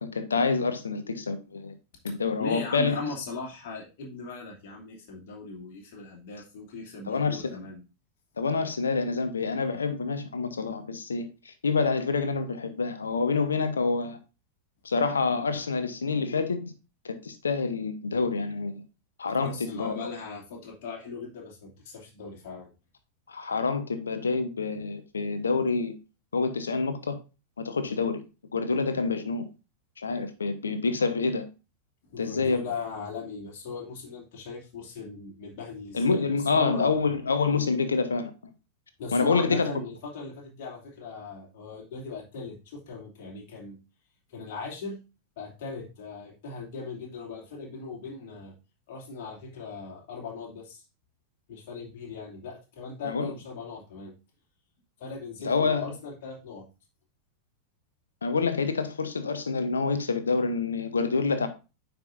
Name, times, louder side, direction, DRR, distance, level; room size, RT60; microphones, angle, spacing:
voice 1, 0.0-1.8 2.0-3.0 7.1-7.5 8.4-14.2 14.8-16.7 17.0-18.8 19.2-19.9 23.3-25.9 26.3-27.2 27.6-28.2 28.5-29.4 30.0-31.4 32.2-32.6 35.9-38.3 39.1-39.7 53.0-53.3 55.4-55.9 58.2-61.5, left 4 dB, 70° left, 1.0 m, -27 dB
voice 2, 2.4-7.8 19.4-22.7 32.1-36.9 39.0-43.8 44.3-45.0 45.4-48.5 48.9-50.8 51.5-54.1 55.0-56.7, left 4 dB, 50° left, 2.8 m, -39 dB
9.2 x 5.3 x 2.6 m
figure-of-eight pair, 90°, 0 cm